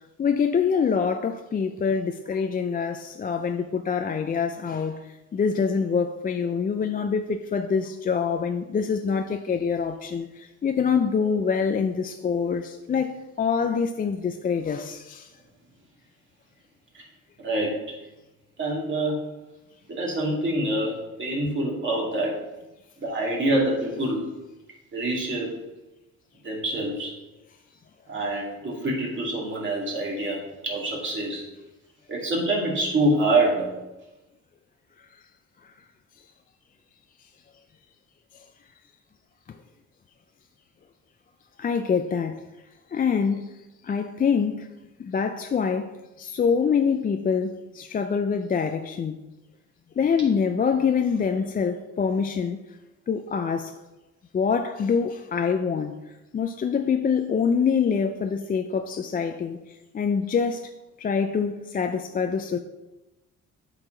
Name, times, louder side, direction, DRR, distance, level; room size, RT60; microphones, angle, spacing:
voice 1, 0.2-15.3 41.6-42.4 42.9-43.5 43.8-44.7 45.0-45.9 46.2-49.2 50.0-52.6 53.1-53.7 54.3-55.9 56.3-59.6 59.9-60.7 61.0-62.6, left 6 dB, 30° left, 0.4 m, -25 dB
voice 2, 17.4-18.0 18.6-19.2 19.9-22.4 23.0-24.3 24.9-25.5 26.4-27.1 28.1-31.4 32.1-33.7, right 1 dB, 40° right, 2.4 m, -26 dB
8.1 x 4.6 x 3.8 m
cardioid pair, 90°, 30 cm